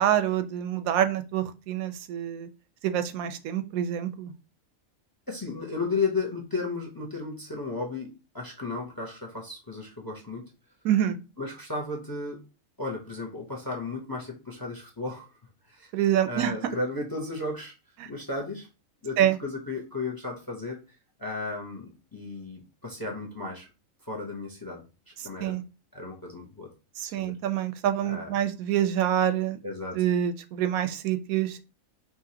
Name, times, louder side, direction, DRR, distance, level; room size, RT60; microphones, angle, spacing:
voice 1, 0.0-2.5 2.8-4.3 10.8-11.2 15.9-16.8 18.0-18.1 19.2-19.4 25.4-25.6 27.0-29.6 29.9-31.6, right 10 dB, 90° right, 10 dB, 1.0 m, -26 dB
voice 2, 5.3-10.4 11.4-12.4 12.8-15.3 15.7-15.9 16.3-17.7 18.0-18.7 19.0-20.8 21.2-23.7 24.0-24.8 25.2-25.6 25.9-26.7 27.0-27.4 28.0-28.3 29.6-30.0, left 3 dB, 20° left, 1 dB, 0.6 m, -34 dB
4.9 x 3.0 x 2.8 m, 0.30 s
omnidirectional pair, 1.4 m